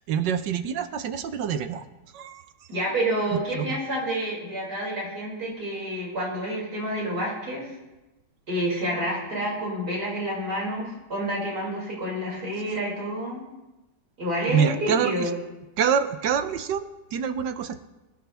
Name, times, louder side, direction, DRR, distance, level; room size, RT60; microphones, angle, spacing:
voice 1, 0.0-1.9 2.1-2.5 3.5-3.8 14.5-15.3 15.8-17.9, right 7 dB, 75° right, 10 dB, 1.4 m, -26 dB
voice 2, 2.7-7.8 8.5-13.4 14.2-15.3, right 1 dB, 60° right, -5 dB, 6.3 m, -29 dB
21.0 x 15.0 x 3.5 m, 1.0 s
omnidirectional pair, 1.9 m